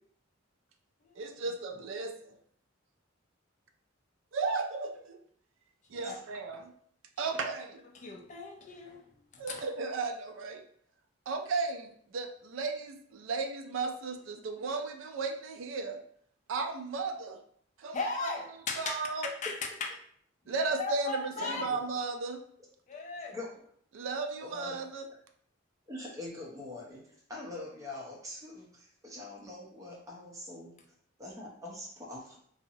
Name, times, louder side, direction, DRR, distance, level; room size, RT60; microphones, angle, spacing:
voice 1, 1.2-2.3 4.3-5.2 5.9-6.7 7.2-7.8 9.4-10.6 11.3-16.0 16.5-17.4 17.8-18.3 18.8-19.3 20.5-22.4 23.9-25.1, right 4 dB, 65° right, 6 dB, 0.3 m, -35 dB
voice 2, 7.9-9.1 9.3-9.6 17.9-19.0 19.4-19.9 20.4-21.8 22.9-23.4, left 4 dB, 35° left, 2 dB, 0.4 m, -37 dB
voice 3, 21.4-21.8 23.3-23.5 24.4-24.8 25.9-30.7 31.2-32.4, left 2 dB, 15° right, -3 dB, 0.6 m, -43 dB
2.6 x 2.0 x 2.7 m, 0.62 s
head